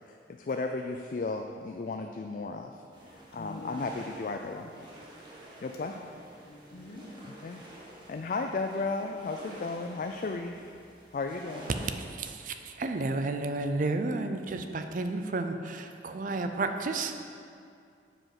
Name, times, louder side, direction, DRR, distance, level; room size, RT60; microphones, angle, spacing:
voice 1, 0.3-4.7 5.6-6.0 7.2-7.6 8.1-10.7 11.1-11.7, left 3 dB, 50° left, 4 dB, 0.3 m, -34 dB
sound 1, 2.9-11.9, right 1 dB, 25° right, 1.3 m, -50 dB
voice 2, 3.3-5.0 5.9-6.0 6.4-7.1, left 1 dB, 65° left, 1 dB, 1.1 m, -47 dB
voice 3, 12.0-17.2, right 3 dB, 50° right, 7 dB, 0.5 m, -32 dB
7.6 x 5.0 x 5.9 m, 2.4 s
head